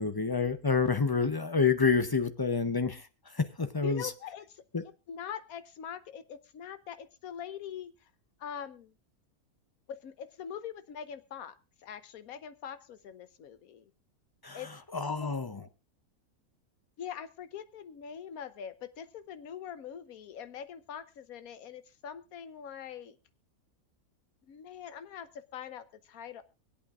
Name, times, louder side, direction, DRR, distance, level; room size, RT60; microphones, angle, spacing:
voice 1, 0.0-4.1 4.7-4.8 14.4-14.6 14.9-15.5, left 5 dB, 30° left, 0.4 m, -28 dB
voice 2, 3.8-4.6 5.1-8.1 8.4-8.9 9.9-11.5 11.8-13.9 14.5-15.3 17.0-23.2 24.4-26.4, left 8 dB, 70° left, 1.3 m, -43 dB
25.0 x 8.5 x 2.5 m
omnidirectional pair, 1.6 m